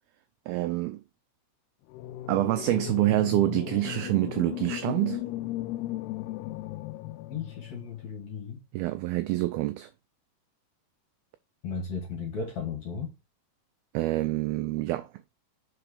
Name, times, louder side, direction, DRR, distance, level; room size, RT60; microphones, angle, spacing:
voice 1, 0.5-1.0 2.3-5.2 8.7-9.9 13.9-15.1, right 17 dB, 85° right, 2.2 m, -26 dB
sound 1, 1.9-8.1, left 14 dB, 80° left, 2.5 m, -36 dB
voice 2, 7.3-8.6 11.6-13.1, left 5 dB, 50° left, 2.5 m, -35 dB
5.9 x 4.5 x 4.9 m
omnidirectional pair, 4.9 m